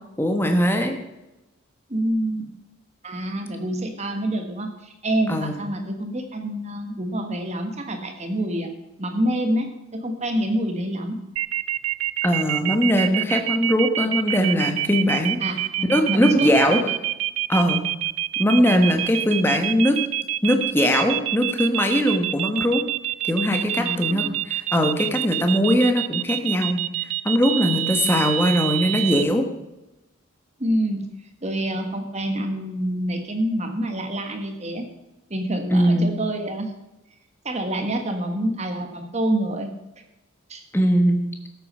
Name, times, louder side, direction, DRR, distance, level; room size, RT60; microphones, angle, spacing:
voice 1, 0.2-1.0 5.3-5.6 12.2-15.4 15.9-16.8 17.5-17.9 18.4-20.0 20.4-22.8 23.2-26.8 27.2-29.5 35.7-36.1 40.7-41.2, equal, 10° left, 4 dB, 1.2 m, -20 dB
voice 2, 1.9-2.5 3.0-8.7 9.0-11.2 15.4-16.7 18.7-19.0 23.8-24.3 30.6-31.0 31.4-34.8 35.3-36.7 37.4-39.7 40.5-40.6, right 1 dB, 30° right, 5 dB, 1.4 m, -27 dB
sound 1, 11.4-29.2, right 14 dB, 75° right, 0.4 m, -26 dB
13.0 x 8.2 x 5.5 m, 0.96 s
head